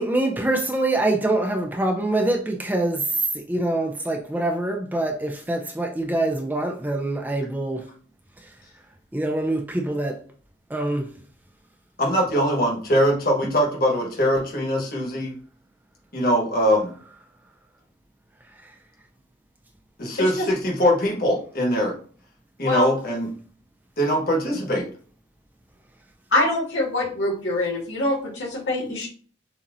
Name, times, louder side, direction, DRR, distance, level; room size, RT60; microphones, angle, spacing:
voice 1, 0.0-3.1 3.3-7.8 9.1-10.2 10.7-11.1, right 2 dB, 10° right, 0.4 m, -24 dB
voice 2, 12.0-15.3 16.1-16.9 20.0-22.0 22.6-23.3 24.0-24.8, equal, 50° left, 1.3 m, -22 dB
voice 3, 26.3-29.1, left 2 dB, 80° left, 2.1 m, -24 dB
7.0 x 2.8 x 2.6 m
head